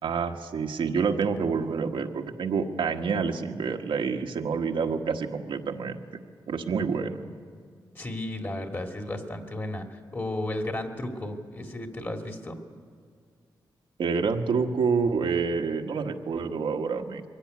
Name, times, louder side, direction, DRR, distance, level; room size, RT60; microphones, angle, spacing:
voice 1, 0.0-6.0 6.5-7.2 14.0-17.2, right 5 dB, 90° right, 3 dB, 1.4 m, -28 dB
voice 2, 7.9-12.6, left 1 dB, 30° left, 4 dB, 2.4 m, -34 dB
23.0 x 16.0 x 9.5 m, 2.1 s
wide cardioid pair, 100°, 8 cm